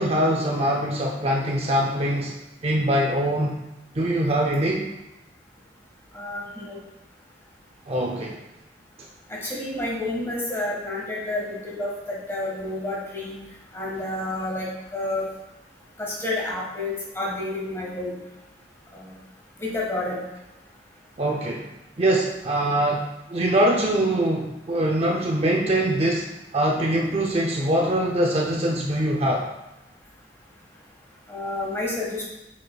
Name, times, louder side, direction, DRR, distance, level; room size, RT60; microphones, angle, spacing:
voice 1, 0.0-2.3 2.6-3.6 3.9-4.9 7.9-8.3 21.2-21.7 22.0-23.0 23.3-29.5, right 1 dB, 35° right, -1 dB, 0.6 m, -23 dB
voice 2, 6.1-6.8 9.3-13.4 13.7-15.2 16.0-18.2 18.9-19.2 19.6-20.2 31.3-32.2, left 2 dB, 15° left, -4 dB, 1.6 m, -30 dB
8.4 x 5.2 x 2.3 m, 0.99 s
head